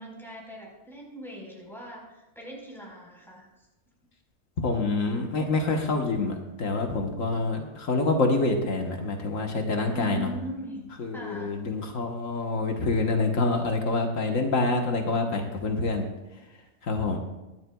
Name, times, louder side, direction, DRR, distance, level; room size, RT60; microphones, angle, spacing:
voice 1, 0.0-3.5 9.9-10.8 11.1-11.6, right 1 dB, ahead, -3 dB, 4.4 m, -40 dB
voice 2, 4.6-10.3 11.0-16.0 16.8-17.2, left 3 dB, 90° left, 2 dB, 1.7 m, -26 dB
23.5 x 11.0 x 2.3 m, 1.0 s
omnidirectional pair, 1.3 m